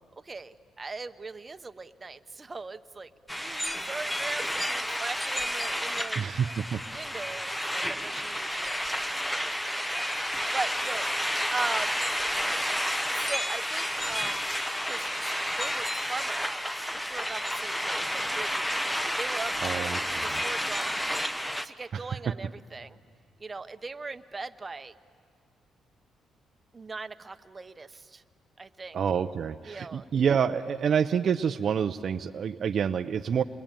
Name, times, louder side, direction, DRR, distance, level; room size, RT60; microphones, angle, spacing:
voice 1, 0.2-6.2 6.9-11.2 11.5-12.0 13.0-14.4 14.8-18.8 19.2-19.8 20.2-21.1 21.6-23.0 23.4-24.9 26.7-28.2 28.6-29.0 29.6-30.1, right 3 dB, 25° right, 9 dB, 0.9 m, -40 dB
sound 1, 3.3-21.7, equal, 5° left, 0.9 m, -31 dB
voice 2, 6.2-6.8 19.6-20.4 21.9-22.3 28.9-33.4, right 7 dB, 55° right, 8 dB, 0.6 m, -28 dB
28.5 x 22.0 x 8.9 m, 2.1 s
cardioid pair, 90°, 0 cm